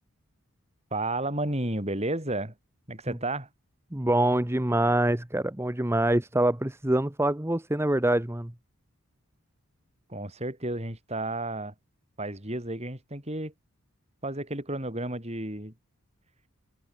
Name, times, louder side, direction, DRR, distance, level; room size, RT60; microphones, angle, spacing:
voice 1, 0.9-2.5 2.9-3.5 10.1-11.7 12.2-13.5 14.2-15.7, right 2 dB, 30° right, 4.5 m, -32 dB
voice 2, 3.9-8.5, right 1 dB, 10° right, 0.9 m, -25 dB
head